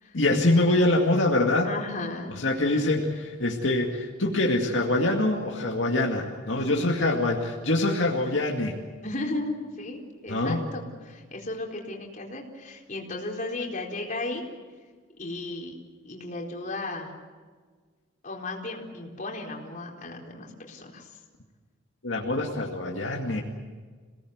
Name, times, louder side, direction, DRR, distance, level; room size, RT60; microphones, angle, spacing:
voice 1, 0.1-1.7 2.3-8.8 10.3-10.6 22.0-23.4, left 2 dB, 70° left, -1 dB, 2.3 m, -24 dB
voice 2, 1.6-2.3 6.5-6.9 9.0-14.4 15.2-15.7 16.0-17.1 18.2-21.1, left 2 dB, 40° left, 0 dB, 4.3 m, -35 dB
27.5 x 18.5 x 8.1 m, 1.5 s
head